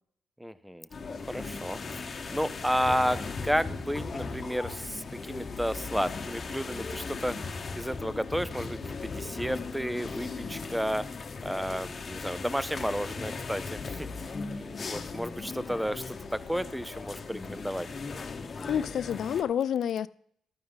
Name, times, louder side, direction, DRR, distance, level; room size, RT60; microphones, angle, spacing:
voice 1, 0.4-7.3 7.8-11.0 11.4-14.1 14.5-17.9, equal, ahead, 0.5 m, -32 dB
sound 1, 0.9-19.4, left 4 dB, 35° left, 1.0 m, -38 dB
voice 2, 18.7-20.1, left 9 dB, 65° left, 0.4 m, -28 dB
12.5 x 9.4 x 3.9 m
cardioid pair, 90°, 0 cm